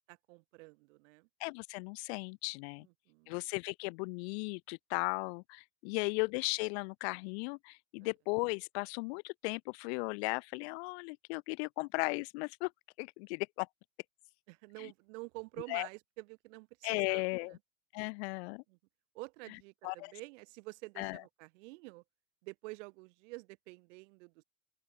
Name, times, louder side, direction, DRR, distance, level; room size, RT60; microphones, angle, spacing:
voice 1, 0.1-1.3 2.8-3.4 5.9-6.0 8.0-8.1 14.5-17.6 18.7-18.8 19.1-22.0 22.4-24.4, right 25 dB, 60° right, 4.2 m, -49 dB
voice 2, 1.4-2.9 3.3-12.7 13.0-13.7 15.7-15.9 16.8-17.6 17.9-18.6 19.8-20.1 21.0-21.2, left 30 dB, 50° left, 0.8 m, -36 dB
open air
supercardioid pair, 150°, 42 cm